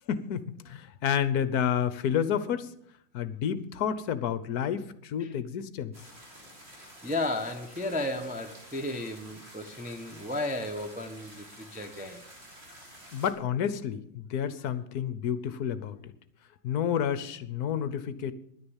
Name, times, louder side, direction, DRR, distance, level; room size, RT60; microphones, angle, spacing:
voice 1, 0.1-2.7 3.1-5.9 13.1-16.0 16.6-18.3, left 8 dB, 60° left, 14 dB, 1.2 m, -30 dB
sound 1, 5.9-13.3, equal, 30° right, 3.6 m, -50 dB
voice 2, 6.8-12.2, left 2 dB, 10° right, 4 dB, 0.6 m, -34 dB
10.5 x 10.0 x 7.2 m, 0.71 s
omnidirectional pair, 2.1 m